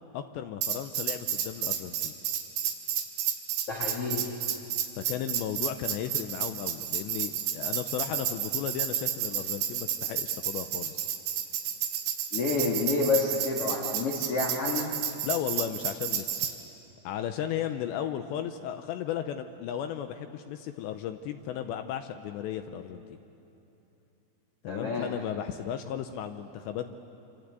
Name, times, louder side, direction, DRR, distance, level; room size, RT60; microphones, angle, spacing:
voice 1, 0.1-2.1 5.0-11.1 15.2-16.5 17.0-23.0 24.6-26.9, left 10 dB, 85° left, 8 dB, 2.5 m, -35 dB
Tambourine, 0.6-16.5, right 9 dB, 75° right, 4.4 m, -31 dB
voice 2, 3.7-4.3 12.3-14.9 24.7-25.1, left 3 dB, 50° left, -1 dB, 1.7 m, -29 dB
27.0 x 26.5 x 8.2 m, 2.8 s
omnidirectional pair, 5.9 m